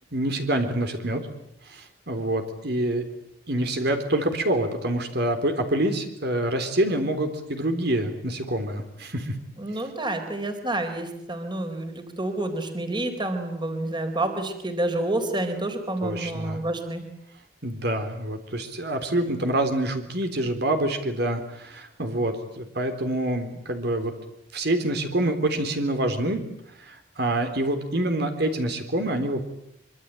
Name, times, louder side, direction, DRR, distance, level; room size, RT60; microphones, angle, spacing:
voice 1, 0.1-1.3 1.6-3.0 3.5-9.4 9.7-9.9 16.0-16.6 17.6-24.1 24.5-26.4 26.7-29.4, right 1 dB, 60° right, 6 dB, 3.7 m, -26 dB
voice 2, 9.6-17.1, right 1 dB, 25° right, 7 dB, 3.9 m, -29 dB
25.0 x 25.0 x 9.1 m, 0.75 s
head